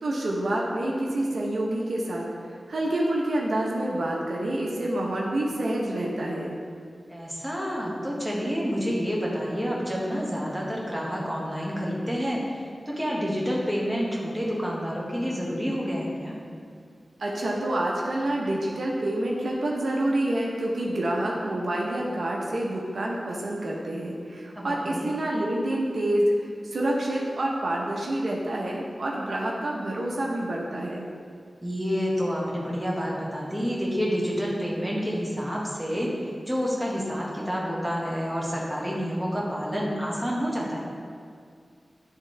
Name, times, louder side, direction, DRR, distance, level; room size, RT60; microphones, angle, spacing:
voice 1, 0.0-2.3 2.7-6.6 17.2-26.3 26.6-31.1, right 1 dB, 75° right, -3 dB, 0.9 m, -27 dB
voice 2, 7.1-12.6 12.8-16.3 24.5-25.1 31.6-36.1 36.5-40.8, equal, 5° right, -4 dB, 1.6 m, -28 dB
10.5 x 3.7 x 3.3 m, 2.2 s
cardioid pair, 55°, 0 cm